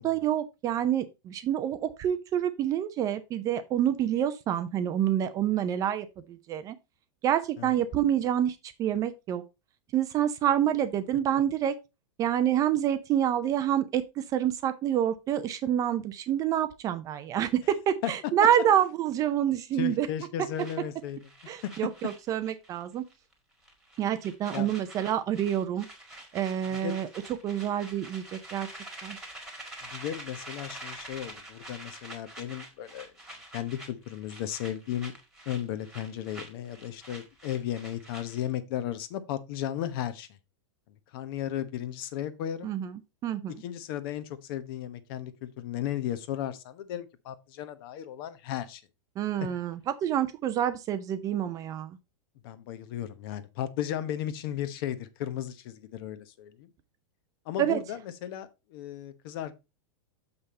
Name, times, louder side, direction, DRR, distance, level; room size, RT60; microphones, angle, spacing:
voice 1, 0.0-6.8 7.2-9.4 9.9-11.8 12.2-20.1 21.5-23.0 24.0-25.9 26.3-27.1 27.4-28.7 29.0-29.2 42.6-43.5 49.2-52.0 57.6-57.8, right 10 dB, 20° right, 0.5 m, -27 dB
voice 2, 19.8-21.2 21.6-21.7 24.5-24.7 26.7-27.0 29.9-33.1 33.5-35.1 35.5-40.3 41.1-42.7 43.5-48.8 49.4-49.5 52.4-56.7 57.5-59.6, left 11 dB, 45° left, 1.0 m, -35 dB
sound 1, 20.6-22.8 23.1-23.3 23.6-38.5, right 1 dB, 5° right, 1.7 m, -46 dB
6.9 x 5.6 x 4.1 m
supercardioid pair, 160°, 16 cm